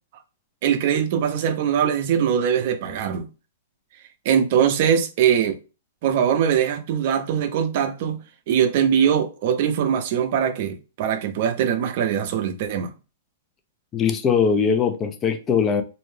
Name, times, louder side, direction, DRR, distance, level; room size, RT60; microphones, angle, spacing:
voice 1, 0.6-3.3 4.2-5.6 6.0-12.9, right 8 dB, 45° right, 0.5 m, -22 dB
voice 2, 13.9-15.8, left 6 dB, 20° left, 0.4 m, -21 dB
2.6 x 2.1 x 3.2 m
hypercardioid pair, 155°, 0 cm